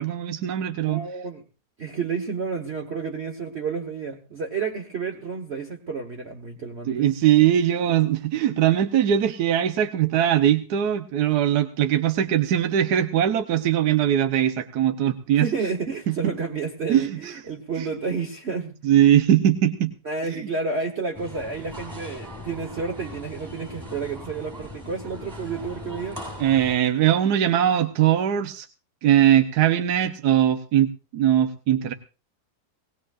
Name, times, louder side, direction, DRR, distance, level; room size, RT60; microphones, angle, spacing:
voice 1, 0.0-1.0 6.9-15.5 16.9-17.3 17.8-17.9 18.8-19.9 26.4-28.7 29.0-31.9, right 11 dB, 75° right, 7 dB, 1.4 m, -21 dB
voice 2, 0.8-1.4 1.8-7.1 15.3-18.7 20.0-26.3, right 5 dB, 40° right, 2 dB, 1.4 m, -30 dB
sound 1, 21.1-26.8, left 1 dB, 10° right, 7.0 m, -39 dB
19.0 x 19.0 x 2.5 m, 0.34 s
omnidirectional pair, 1.8 m